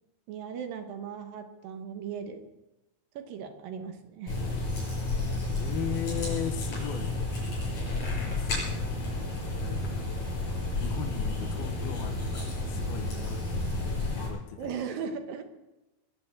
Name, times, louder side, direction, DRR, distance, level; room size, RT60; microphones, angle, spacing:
voice 1, 0.3-2.5 3.1-4.4 14.6-15.4, right 6 dB, 70° right, 7 dB, 2.7 m, -37 dB
sound 1, 4.3-14.3, left 2 dB, 40° left, 7.9 m, -31 dB
voice 2, 5.6-7.1 8.0-8.8 9.6-10.0 10.8-14.7, left 8 dB, 75° left, 5 dB, 3.0 m, -38 dB
22.0 x 7.7 x 8.1 m, 1.0 s
omnidirectional pair, 4.6 m